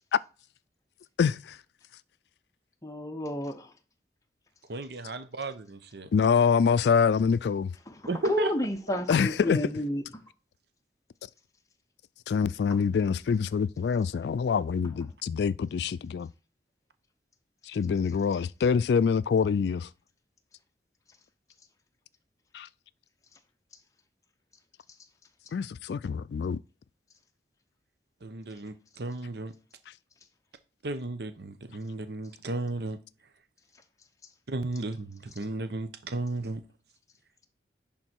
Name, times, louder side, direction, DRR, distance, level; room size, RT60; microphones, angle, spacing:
voice 1, 1.2-1.6 6.1-7.7 9.1-9.6 12.3-16.3 17.7-19.9 22.5-22.7 25.5-26.6, left 6 dB, 70° left, 0.3 m, -25 dB
voice 2, 2.8-3.7 7.9-8.0 8.2-10.0, left 1 dB, 20° left, 0.7 m, -30 dB
voice 3, 4.7-6.1 8.1-8.5 8.9-9.0 28.2-29.5 30.8-33.0 34.5-36.6, right 2 dB, 70° right, 0.8 m, -34 dB
10.5 x 3.8 x 4.4 m
head